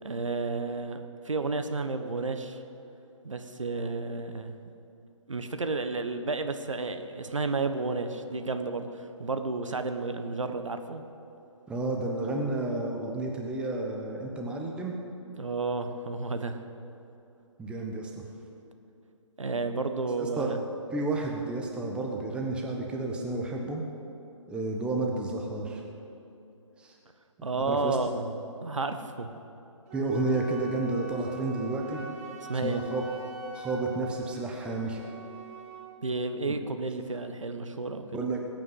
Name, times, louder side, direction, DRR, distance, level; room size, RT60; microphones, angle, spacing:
voice 1, 0.0-2.6 3.2-4.5 5.3-11.0 15.4-16.6 19.4-20.6 27.4-28.3 28.6-29.3 32.5-32.8 36.0-38.3, right 3 dB, 70° right, 7 dB, 1.3 m, -32 dB
voice 2, 11.7-14.9 17.6-18.2 20.2-20.5 20.9-23.8 24.5-25.8 26.8-26.9 27.7-28.0 29.9-32.0 32.6-33.0 33.5-35.0 36.5-36.6 38.1-38.4, right 2 dB, 5° right, 0 dB, 1.2 m, -31 dB
Wind instrument woodwind instrument, 29.9-35.9, right 3 dB, 30° right, 2.4 m, -45 dB
20.0 x 8.8 x 8.0 m, 2.8 s
figure-of-eight pair, 140°, 17 cm